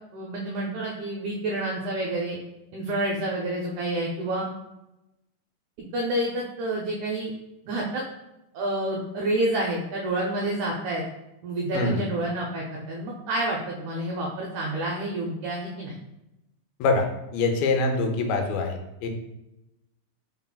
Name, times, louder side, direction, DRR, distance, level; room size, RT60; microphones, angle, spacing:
voice 1, 0.1-2.4 2.7-4.5 5.9-7.3 7.7-8.0 8.5-11.0 11.4-16.0, right 1 dB, 85° right, -1 dB, 1.6 m, -28 dB
voice 2, 11.7-12.1 16.8-17.1 17.3-19.1, left 3 dB, 90° left, 4 dB, 2.5 m, -24 dB
5.5 x 4.0 x 2.2 m, 0.91 s
omnidirectional pair, 4.1 m